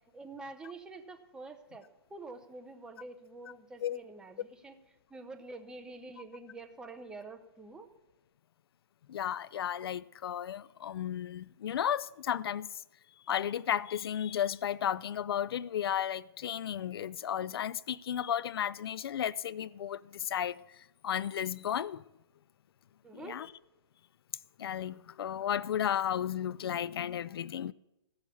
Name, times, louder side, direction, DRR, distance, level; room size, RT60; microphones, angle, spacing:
voice 1, 0.1-4.8 5.1-7.9 23.0-23.4, right 3 dB, 5° right, 0.7 m, -47 dB
voice 2, 9.1-12.8 13.3-22.0 23.1-23.5 24.6-27.7, left 10 dB, 70° left, 0.4 m, -34 dB
14.5 x 6.4 x 7.0 m
hypercardioid pair, 155°, 13 cm